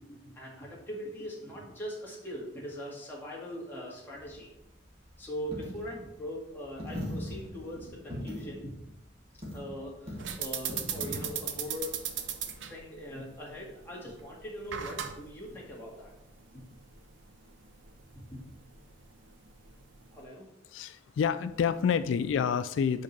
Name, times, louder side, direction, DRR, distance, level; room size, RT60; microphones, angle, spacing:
voice 1, 0.1-4.5 5.2-8.7 9.5-11.9 12.7-16.1 16.5-16.6 18.1-18.4 20.1-20.5, equal, 10° left, -5 dB, 1.9 m, -41 dB
Coin (dropping), 4.1-12.7, equal, 35° right, 1.8 m, -42 dB
sound 1, 10.2-20.2, right 8 dB, 85° right, 0.6 m, -39 dB
voice 2, 20.7-23.0, left 7 dB, 90° left, 13 dB, 0.3 m, -28 dB
5.2 x 4.8 x 5.3 m, 0.86 s
head